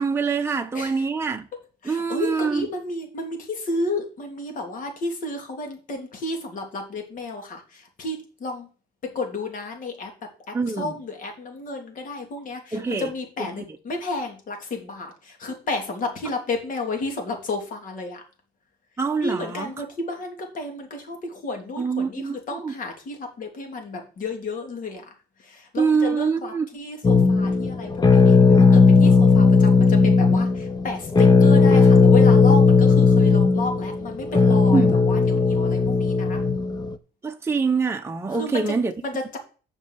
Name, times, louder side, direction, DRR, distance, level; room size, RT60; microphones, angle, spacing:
voice 1, 0.0-1.5 1.9-2.7 10.5-10.9 12.7-13.1 13.4-13.5 19.0-19.7 21.8-22.7 25.8-26.7 34.7-34.9 37.2-38.9, right 5 dB, 15° right, 0.8 m, -24 dB
voice 2, 1.8-8.7 9.0-18.2 19.2-25.1 25.4-36.4 38.3-38.8 39.0-39.4, left 2 dB, 50° left, 3.2 m, -32 dB
sound 1, 27.0-36.9, left 4 dB, 25° left, 0.8 m, -16 dB
7.3 x 5.5 x 7.5 m
cardioid pair, 110°, 17 cm